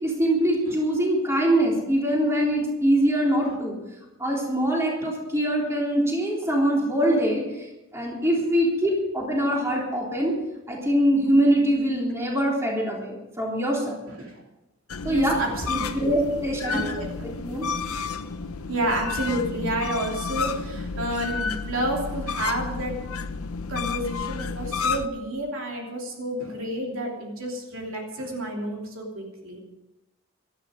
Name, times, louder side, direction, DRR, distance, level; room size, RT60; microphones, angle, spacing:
voice 1, 0.0-3.8 4.2-10.3 10.7-14.0 15.0-15.4 15.7-16.8 17.2-17.7, right 1 dB, 10° right, -3 dB, 3.6 m, -23 dB
sound 1, 14.9-25.1, left 5 dB, 75° left, 0.8 m, -31 dB
voice 2, 15.1-16.1 16.7-17.1 18.7-22.9 23.7-29.6, right 1 dB, 65° right, 0 dB, 3.1 m, -30 dB
18.0 x 12.5 x 5.2 m, 0.98 s
head